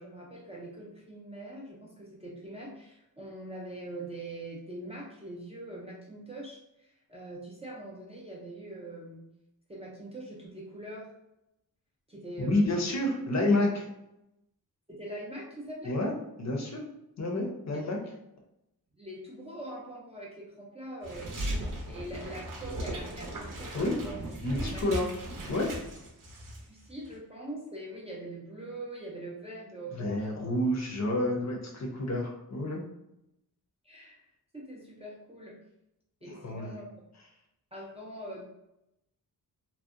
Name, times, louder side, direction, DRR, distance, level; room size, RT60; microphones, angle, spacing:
voice 1, 0.0-9.2 9.7-11.1 12.1-12.8 14.9-16.0 19.0-21.4 21.9-24.2 24.7-24.8 26.7-30.5 33.8-34.2 34.5-35.5 36.2-36.9 37.7-38.4, right 1 dB, 15° right, -4 dB, 0.4 m, -43 dB
voice 2, 12.4-13.9 15.8-16.1 16.4-16.8 17.2-18.0 23.7-24.0 24.4-25.1 25.5-25.7 29.9-32.8 36.3-36.7, left 1 dB, 45° left, 0 dB, 0.5 m, -29 dB
sound 1, 21.0-26.6 26.9-27.1, right 1 dB, 55° right, 0.6 m, -37 dB
2.6 x 2.1 x 2.4 m, 0.86 s
wide cardioid pair, 150°, 39 cm